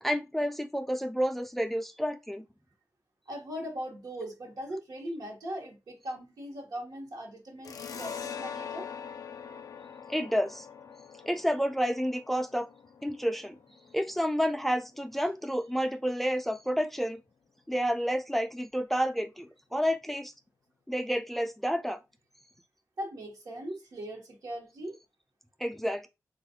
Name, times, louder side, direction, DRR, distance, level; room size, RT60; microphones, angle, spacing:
voice 1, 0.0-2.5 10.1-10.7 11.3-12.7 13.0-13.6 13.9-17.2 17.7-20.3 20.9-22.0 25.6-26.1, equal, 5° left, 0.3 m, -30 dB
voice 2, 3.3-8.9 23.0-25.0, equal, 80° right, 1.0 m, -39 dB
sound 1, 7.6-14.8, left 7 dB, 80° left, 0.4 m, -43 dB
3.3 x 2.4 x 2.7 m
wide cardioid pair, 100°, 6 cm